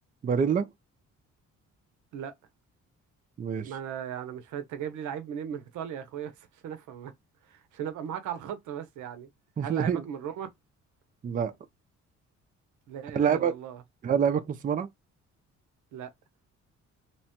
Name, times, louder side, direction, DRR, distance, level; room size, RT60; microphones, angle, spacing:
voice 1, 0.2-0.7 3.4-3.7 9.6-10.0 11.2-11.5 13.1-13.6 14.0-14.9, right 7 dB, 30° right, 0.4 m, -26 dB
voice 2, 3.6-7.1 7.5-9.3 9.6-10.5 12.9-13.8 15.9-16.1, right 9 dB, 80° right, 0.7 m, -37 dB
2.9 x 2.1 x 2.8 m
cardioid pair, 90°, 30 cm